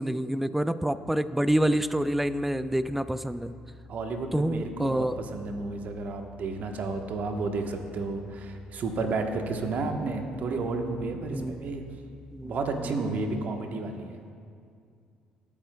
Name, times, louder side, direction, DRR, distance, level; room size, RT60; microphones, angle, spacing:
voice 1, 0.0-3.5 4.3-5.2 11.3-11.7 12.3-12.5, right 1 dB, 5° right, 14 dB, 0.4 m, -27 dB
sound 1, 1.5-12.9, left 4 dB, 25° left, 0.7 m, -51 dB
voice 2, 3.9-11.8 12.4-14.2, right 3 dB, 55° right, 4 dB, 1.1 m, -32 dB
19.0 x 8.7 x 2.3 m, 2.3 s
hypercardioid pair, 55°, 3 cm